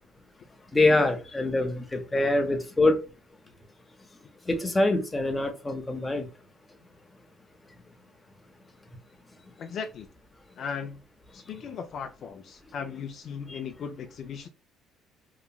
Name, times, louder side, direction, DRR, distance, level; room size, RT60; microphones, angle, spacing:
voice 1, 0.7-3.0 4.5-6.3 13.5-13.6, left 2 dB, 15° left, 5 dB, 0.7 m, -24 dB
voice 2, 9.6-10.1 10.6-11.0 11.3-14.5, left 6 dB, 55° left, 6 dB, 0.4 m, -37 dB
2.9 x 2.4 x 2.3 m, 0.31 s
cardioid pair, 95°, 0 cm